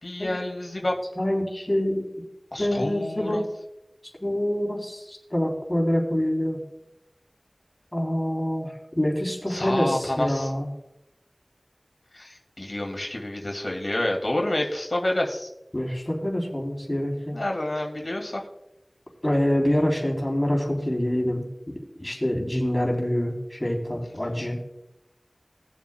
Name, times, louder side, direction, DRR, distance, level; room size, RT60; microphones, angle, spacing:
voice 1, 0.0-0.9 2.5-3.4 9.5-10.5 12.1-15.5 17.3-18.4, left 1 dB, 60° left, 1 dB, 2.3 m, -28 dB
voice 2, 1.2-2.1 2.6-3.4 4.2-6.6 7.9-10.7 15.7-17.4 19.2-24.5, left 1 dB, 25° left, 0 dB, 3.5 m, -26 dB
21.0 x 7.3 x 2.3 m, 0.88 s
wide cardioid pair, 45°, 0 cm